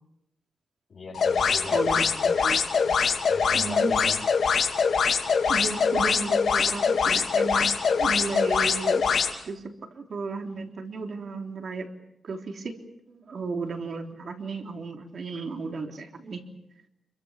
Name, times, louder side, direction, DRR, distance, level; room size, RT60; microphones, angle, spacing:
voice 1, 0.9-2.4 3.3-4.2, left 3 dB, 50° left, -4 dB, 6.6 m, -39 dB
sound 1, 1.1-9.3, left 6 dB, 65° left, 2.9 m, -23 dB
voice 2, 1.7-3.0 3.5-3.9 5.5-9.0 9.4-9.6 9.9-11.9 12.2-12.7 13.1-16.4, right 4 dB, 50° right, 3 dB, 3.5 m, -34 dB
27.5 x 23.5 x 7.5 m, 0.82 s
wide cardioid pair, 145°, 0 cm